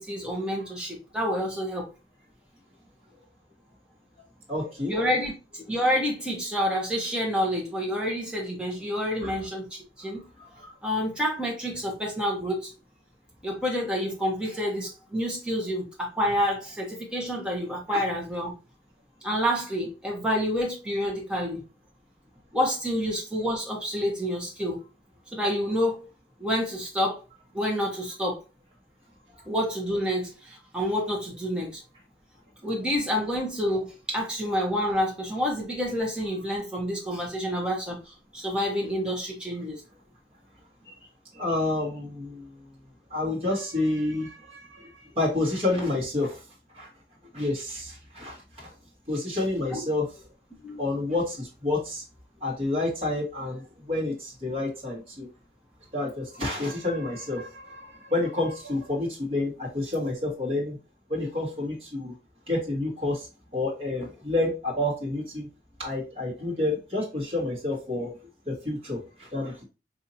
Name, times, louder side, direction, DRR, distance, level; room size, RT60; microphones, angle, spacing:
voice 1, 0.0-1.9 4.9-10.2 10.8-12.7 13.4-18.5 19.2-21.6 22.5-24.8 25.3-26.1 26.4-27.2 27.5-28.4 29.5-31.8 32.6-39.8 49.7-49.8 50.6-50.8, equal, 5° right, 0.9 m, -28 dB
voice 2, 4.5-4.9 9.2-9.3 10.4-10.7 17.9-18.0 40.9-41.0 41.3-42.5 43.1-46.4 46.7-46.9 47.3-48.7 49.1-50.1 50.8-52.0 52.4-55.3 55.9-60.8 61.1-62.1 62.5-63.3 63.5-65.5 65.8-68.1 68.4-69.6, left 2 dB, 30° right, 1.3 m, -29 dB
4.0 x 2.7 x 2.7 m
head